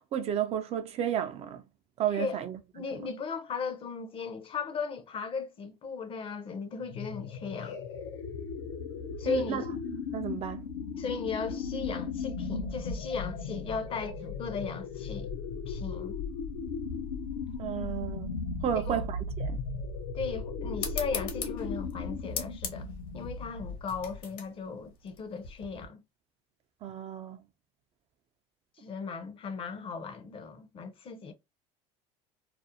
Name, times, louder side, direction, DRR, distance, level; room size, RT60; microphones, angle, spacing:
voice 1, 0.0-1.6 2.0-2.6 9.2-9.6 10.1-10.7 17.6-19.6 26.8-27.4, right 9 dB, 40° right, 0.4 m, -32 dB
voice 2, 2.7-7.8 9.2-9.7 11.0-15.3 15.7-16.2 18.7-19.0 20.1-26.0 28.8-31.3, left 5 dB, 35° left, 0.5 m, -37 dB
sound 1, 6.8-24.4, left 4 dB, 85° left, 0.6 m, -37 dB
sound 2, 20.8-25.9, left 7 dB, 65° left, 0.8 m, -40 dB
2.4 x 2.0 x 2.7 m
supercardioid pair, 105°, 15 cm